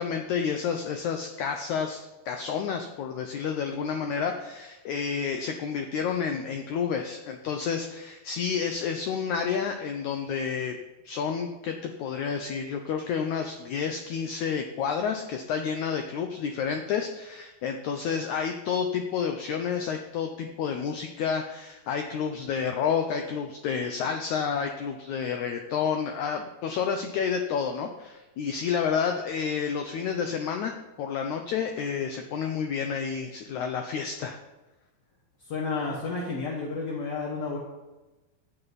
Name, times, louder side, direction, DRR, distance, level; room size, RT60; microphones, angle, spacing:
voice 1, 0.0-10.8 11.1-34.4, left 6 dB, 90° left, 5 dB, 1.6 m, -30 dB
voice 2, 35.4-37.6, left 4 dB, 50° left, -2 dB, 2.3 m, -31 dB
15.0 x 9.0 x 4.1 m, 1.1 s
omnidirectional pair, 4.4 m